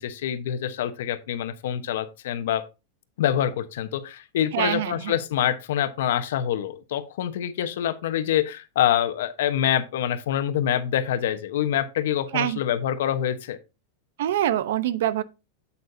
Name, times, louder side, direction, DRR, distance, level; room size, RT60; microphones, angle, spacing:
voice 1, 0.0-2.7 3.2-13.6, left 10 dB, 75° left, 1.1 m, -26 dB
voice 2, 4.5-5.2 12.3-12.6 14.2-15.2, right 12 dB, 70° right, 0.8 m, -25 dB
8.7 x 8.4 x 2.7 m
supercardioid pair, 170°, 0 cm